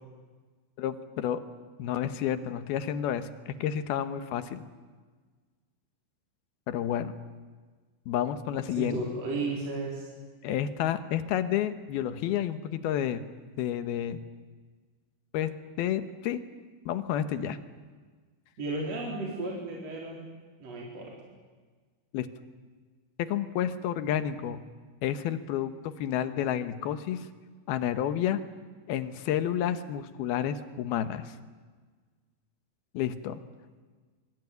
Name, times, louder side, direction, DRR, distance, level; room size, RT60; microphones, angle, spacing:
voice 1, 0.8-1.4 1.8-4.6 6.7-7.2 8.1-9.0 10.4-13.2 13.6-14.2 15.3-16.4 16.9-17.6 22.1-22.3 23.2-24.6 25.0-27.3 27.7-28.4 28.9-31.3 32.9-33.4, left 10 dB, 70° left, 11 dB, 2.7 m, -30 dB
voice 2, 8.8-10.1 18.6-20.2 20.6-21.2, right 2 dB, 35° right, -3 dB, 5.1 m, -34 dB
25.5 x 24.0 x 9.4 m, 1.4 s
omnidirectional pair, 5.3 m